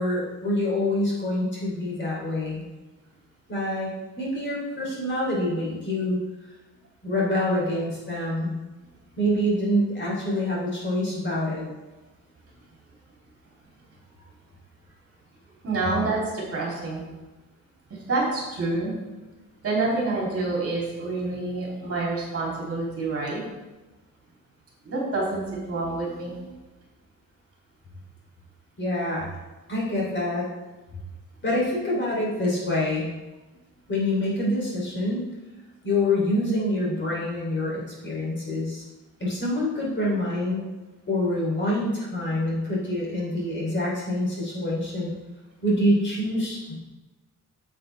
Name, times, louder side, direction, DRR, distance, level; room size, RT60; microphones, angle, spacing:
voice 1, 0.0-2.6 3.5-3.9 4.2-6.2 7.0-8.6 9.2-11.6 28.8-29.3 29.7-30.5 31.4-33.1 33.9-35.2 35.8-38.8 39.2-40.6 41.1-45.1 45.6-46.7, left 1 dB, 35° left, -5 dB, 3.2 m, -26 dB
voice 2, 15.6-17.0 17.9-18.9 19.6-23.4 24.8-26.5, right 3 dB, 45° right, -4 dB, 3.1 m, -27 dB
9.2 x 7.9 x 3.4 m, 1.1 s
wide cardioid pair, 150°, 33 cm